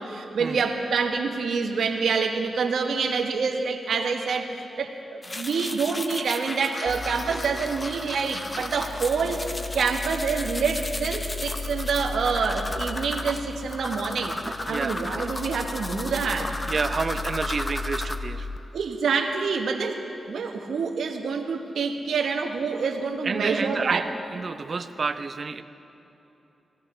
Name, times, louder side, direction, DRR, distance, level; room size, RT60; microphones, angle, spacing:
voice 1, 0.0-9.4 9.7-14.4 14.7-16.5 18.7-24.0, right 5 dB, 80° right, 3 dB, 1.2 m, -27 dB
sound 1, 5.2-18.2, left 2 dB, 25° left, 0.7 m, -35 dB
sound 2, 6.9-18.6, left 3 dB, 65° left, 0.4 m, -36 dB
voice 2, 14.4-14.9 16.7-18.5 23.2-24.1 24.3-25.6, right 4 dB, 50° right, 10 dB, 0.6 m, -29 dB
19.5 x 16.0 x 3.3 m, 3.0 s
cardioid pair, 80°, 0 cm